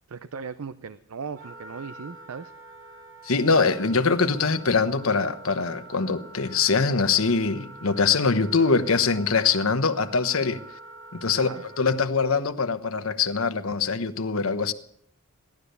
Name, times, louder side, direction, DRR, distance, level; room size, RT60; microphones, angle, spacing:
voice 1, 0.1-2.5 11.3-11.6, right 5 dB, 85° right, 12 dB, 0.6 m, -38 dB
Wind instrument woodwind instrument, 1.3-12.0, right 2 dB, 60° right, 2.9 m, -46 dB
voice 2, 3.2-10.6 11.1-11.5 11.8-14.7, left 4 dB, 75° left, 10 dB, 1.1 m, -23 dB
17.0 x 12.0 x 6.7 m, 0.71 s
head